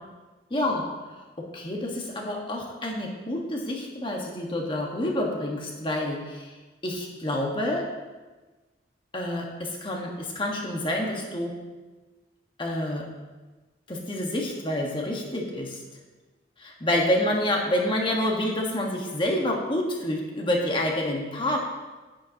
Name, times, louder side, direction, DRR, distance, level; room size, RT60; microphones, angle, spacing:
voice 1, 0.5-0.8 1.2-6.5 6.8-7.9 9.1-11.5 12.6-13.0 13.9-15.8 16.6-21.7, left 1 dB, 25° left, -1 dB, 1.5 m, -28 dB
9.9 x 9.7 x 2.9 m, 1.2 s
head